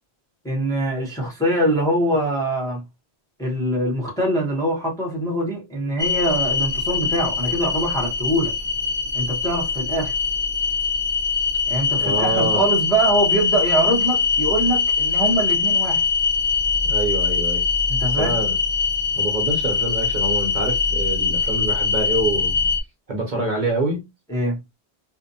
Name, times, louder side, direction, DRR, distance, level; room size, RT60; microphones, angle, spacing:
voice 1, 0.4-2.8 3.4-8.5 9.1-10.1 11.7-16.0 17.9-18.3 24.3-24.6, right 1 dB, 5° left, 0.7 m, -23 dB
sound 1, 6.0-22.8, left 5 dB, 45° left, 0.4 m, -22 dB
voice 2, 11.9-12.7 16.8-17.6 18.1-18.6 19.2-22.7 23.1-24.1, right 2 dB, 50° right, 0.8 m, -26 dB
2.7 x 2.0 x 2.6 m
omnidirectional pair, 1.1 m